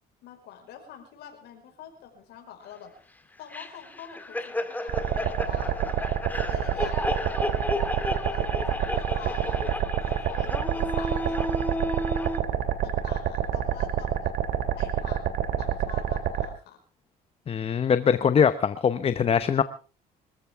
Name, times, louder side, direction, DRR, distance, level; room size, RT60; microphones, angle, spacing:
voice 1, 0.2-2.9 3.4-5.8 6.4-7.2 8.3-8.4 8.7-11.4 12.8-14.3 14.8-16.8, left 9 dB, 80° left, 3 dB, 5.1 m, -46 dB
sound 1, 3.5-12.4, left 1 dB, 10° left, 1.9 m, -32 dB
sound 2, 4.9-16.5, right 9 dB, 70° right, 2.2 m, -27 dB
voice 2, 17.5-19.6, left 7 dB, 35° left, 12 dB, 0.8 m, -22 dB
25.0 x 14.5 x 3.6 m, 0.36 s
cardioid pair, 110°, 17 cm